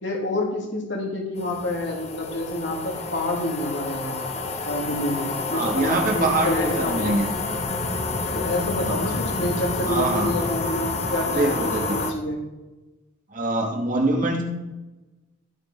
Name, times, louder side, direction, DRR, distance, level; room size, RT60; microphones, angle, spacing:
voice 1, 0.0-4.2 4.6-7.2 8.3-12.4, left 1 dB, 60° left, -1 dB, 3.0 m, -28 dB
sound 1, 1.4-12.1, left 3 dB, 30° left, 1.1 m, -29 dB
voice 2, 5.5-7.3 8.8-9.3 9.9-10.4 11.3-12.1 13.3-14.4, right 2 dB, 40° right, 0 dB, 2.1 m, -24 dB
15.5 x 8.6 x 4.6 m, 1.1 s
head